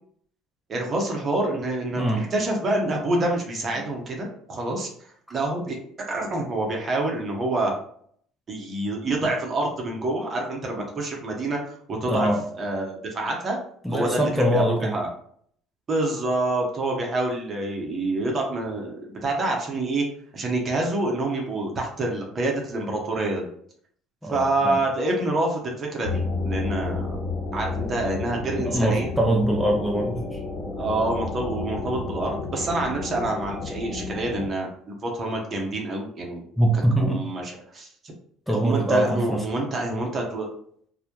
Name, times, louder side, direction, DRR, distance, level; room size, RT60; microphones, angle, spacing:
voice 1, 0.7-4.9 5.3-5.8 6.1-7.7 8.5-11.6 11.9-12.3 12.5-13.6 13.9-15.1 15.9-20.1 20.3-23.5 24.3-27.2 27.5-29.1 30.8-36.4 36.7-37.9 38.5-40.5, right 2 dB, 40° right, 1 dB, 0.8 m, -27 dB
voice 2, 12.1-12.4 13.8-14.9 24.2-24.8 28.7-30.4 36.6-37.2 38.5-39.4, right 1 dB, ahead, 0 dB, 0.5 m, -23 dB
sound 1, 26.0-34.5, left 3 dB, 40° left, 1.0 m, -31 dB
2.1 x 2.1 x 2.8 m, 0.63 s
hypercardioid pair, 70°, 0 cm